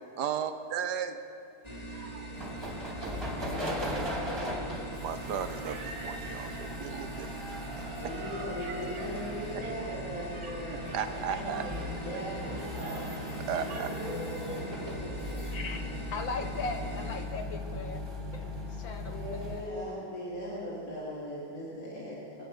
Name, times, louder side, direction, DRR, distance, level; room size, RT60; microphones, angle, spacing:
voice 1, 0.2-1.2 1.9-2.3 4.9-7.3 10.7-11.6 13.5-13.9, right 8 dB, 65° right, 9 dB, 1.0 m, -35 dB
sound 1, 1.6-17.3, right 2 dB, 20° left, 1.7 m, -42 dB
sound 2, 2.3-19.7, left 1 dB, 10° right, 1.8 m, -38 dB
sound 3, 3.6-14.2, right 4 dB, 90° right, 2.3 m, -49 dB
voice 2, 7.9-15.9 19.1-22.4, equal, 40° left, -8 dB, 3.3 m, -39 dB
voice 3, 15.5-15.8 16.1-18.1 18.3-19.2 19.5-19.6, left 3 dB, 65° left, 5 dB, 1.6 m, -38 dB
23.0 x 8.6 x 6.1 m, 2.7 s
omnidirectional pair, 2.4 m